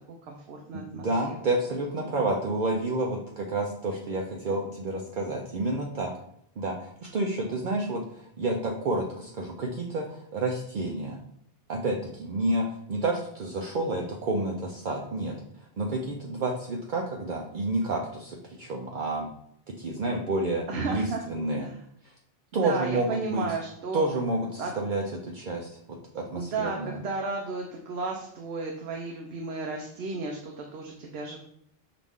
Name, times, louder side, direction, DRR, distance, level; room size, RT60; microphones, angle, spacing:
voice 1, 0.2-1.4 2.0-2.1 20.7-21.2 21.5-21.8 22.5-24.1 24.6-24.7 26.4-31.4, right 3 dB, 80° right, 1 dB, 0.9 m, -33 dB
voice 2, 1.0-6.1 6.6-11.2 11.7-15.4 15.8-19.3 19.7-21.7 22.0-22.1 22.5-23.5 23.9-27.0, right 2 dB, 55° right, 0 dB, 0.7 m, -30 dB
5.9 x 2.4 x 3.5 m, 0.70 s
omnidirectional pair, 1.0 m